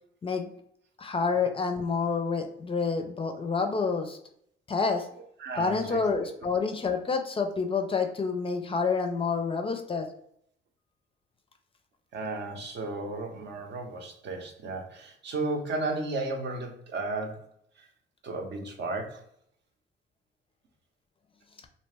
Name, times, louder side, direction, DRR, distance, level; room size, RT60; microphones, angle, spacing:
voice 1, 1.0-4.2 4.7-5.1 5.6-10.1, left 4 dB, 30° left, 5 dB, 0.4 m, -28 dB
voice 2, 5.4-6.0 12.1-17.5 17.8-17.9 18.2-19.2, right 2 dB, 60° right, 3 dB, 0.7 m, -34 dB
2.6 x 2.1 x 3.2 m, 0.69 s
cardioid pair, 90°, 20 cm